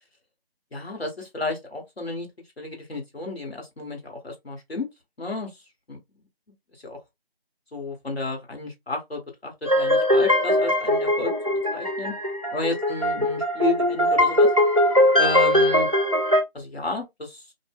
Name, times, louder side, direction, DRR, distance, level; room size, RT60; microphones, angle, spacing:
voice 1, 0.7-2.3 2.6-4.9 5.2-5.5 5.9-6.0 6.8-7.0 7.7-11.3 11.7-12.1 12.5-14.5 15.1-15.9 16.5-17.4, left 2 dB, 75° left, 1.6 m, -31 dB
sound 1, 9.7-16.4, left 1 dB, 35° right, 0.4 m, -21 dB
2.6 x 2.2 x 3.5 m
figure-of-eight pair, 170°, 31 cm